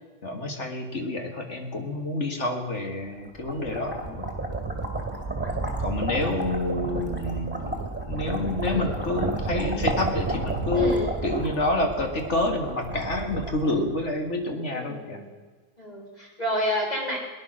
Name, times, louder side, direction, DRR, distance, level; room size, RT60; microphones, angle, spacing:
voice 1, 0.2-4.3 5.8-11.0 11.2-15.2, left 2 dB, 50° left, 4 dB, 2.2 m, -28 dB
sound 1, 3.1-14.3, right 2 dB, 5° right, 2.6 m, -31 dB
voice 2, 8.7-9.0 10.7-11.2 14.7-15.3 15.8-17.2, left 1 dB, 25° left, -2 dB, 4.3 m, -30 dB
18.0 x 11.0 x 6.3 m, 1.4 s
omnidirectional pair, 1.6 m